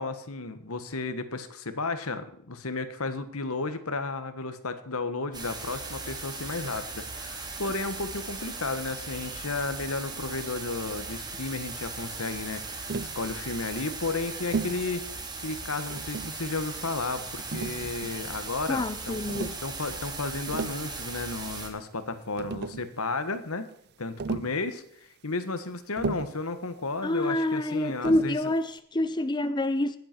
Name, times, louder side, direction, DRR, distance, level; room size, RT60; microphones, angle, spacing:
voice 1, 0.0-19.3 19.6-23.7 24.0-28.4, left 3 dB, 80° left, 1.6 m, -33 dB
sound 1, 5.3-21.7, right 3 dB, 20° right, 2.3 m, -38 dB
Tap, 12.9-13.2 14.5-14.8 15.9-16.5 17.5-18.3 19.3-19.6 20.3-20.9 22.0-22.1 22.4-22.9 24.2-24.6 26.0-26.4 28.0-28.4, right 4 dB, 50° right, 0.6 m, -34 dB
voice 2, 18.7-19.5 27.0-30.0, left 1 dB, 20° left, 0.6 m, -27 dB
20.5 x 8.0 x 4.6 m
head